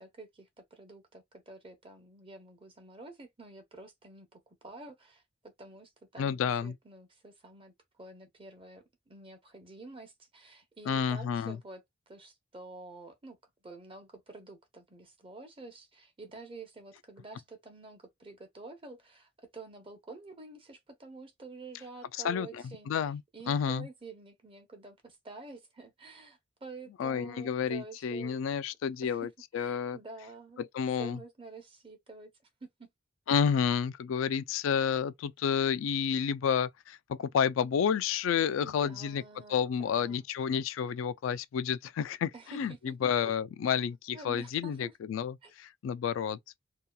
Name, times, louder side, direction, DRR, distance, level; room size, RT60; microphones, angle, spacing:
voice 1, 0.0-7.7 8.0-13.4 13.6-22.9 23.3-28.6 29.0-29.3 29.5-30.6 31.0-32.3 32.6-32.9 33.5-33.6 38.6-40.3 42.3-43.3 44.1-44.9 45.4-45.5, right 3 dB, 25° right, 0.7 m, -49 dB
voice 2, 6.2-6.8 10.9-11.6 22.2-23.2 23.5-23.9 27.0-30.0 30.6-31.2 33.3-39.2 39.5-46.4, left 7 dB, 85° left, 0.3 m, -30 dB
2.8 x 2.3 x 2.2 m
head